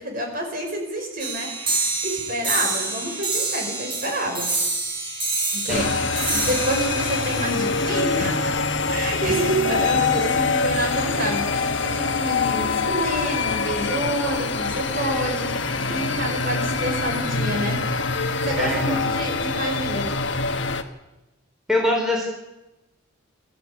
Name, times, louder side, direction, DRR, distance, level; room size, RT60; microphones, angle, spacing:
voice 1, 0.0-4.5 5.5-8.4 8.9-17.8 18.2-20.2, right 1 dB, 40° right, 2 dB, 5.6 m, -28 dB
sound 1, 1.2-8.2, right 3 dB, 25° right, 4.8 m, -27 dB
sound 2, 5.7-20.8, left 4 dB, 60° left, 1.5 m, -24 dB
voice 2, 18.5-19.0 21.7-22.3, left 1 dB, ahead, -1 dB, 4.0 m, -24 dB
24.0 x 14.0 x 8.8 m, 1.0 s
head